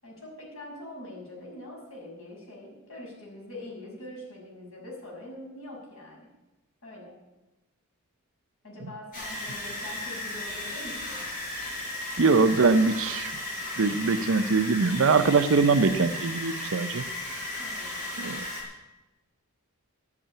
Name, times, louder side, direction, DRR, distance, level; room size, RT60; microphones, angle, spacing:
voice 1, 0.0-6.3 6.8-7.1 8.6-11.3 14.0-14.1 17.6-18.0, left 1 dB, 65° left, -2 dB, 5.9 m, -43 dB
sound 1, 9.1-18.6, left 2 dB, 40° left, 5.5 m, -35 dB
voice 2, 12.2-13.3 13.8-17.0 18.2-18.5, right 4 dB, 60° right, 10 dB, 0.6 m, -22 dB
13.0 x 8.4 x 8.7 m, 1.1 s
head